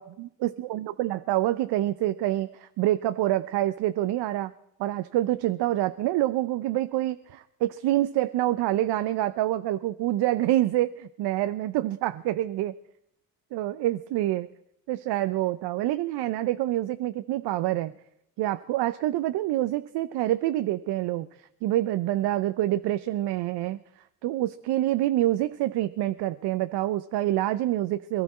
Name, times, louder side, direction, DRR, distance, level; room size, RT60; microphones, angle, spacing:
voice 1, 0.0-4.5 4.8-12.7 13.5-14.5 14.9-17.9 18.4-21.3 21.6-23.8 24.2-28.2, right 14 dB, 65° right, 11 dB, 0.8 m, -26 dB
23.0 x 13.0 x 4.2 m, 0.76 s
hypercardioid pair, 55°, 43 cm